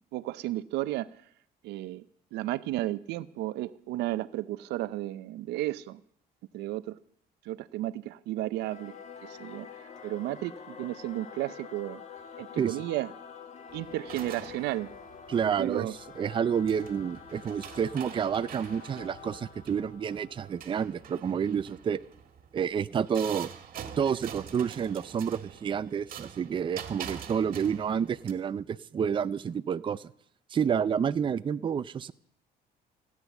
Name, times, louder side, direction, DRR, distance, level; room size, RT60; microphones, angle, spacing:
voice 1, 0.1-1.1 1.6-2.0 2.3-6.0 6.5-7.0 7.4-8.9 9.2-9.7 10.0-12.0 12.4-13.1 13.7-14.9 15.3-15.9, right 15 dB, 85° right, 0.6 m, -33 dB
Singing / Musical instrument, 8.6-21.5, left 7 dB, 40° left, 1.5 m, -47 dB
sound 1, 13.7-28.3, right 9 dB, 55° right, 1.8 m, -46 dB
voice 2, 15.3-15.9 16.2-22.0 22.5-23.5 24.0-30.1 30.5-32.1, right 7 dB, 30° right, 0.5 m, -29 dB
16.0 x 9.6 x 7.1 m
cardioid pair, 110°, 17 cm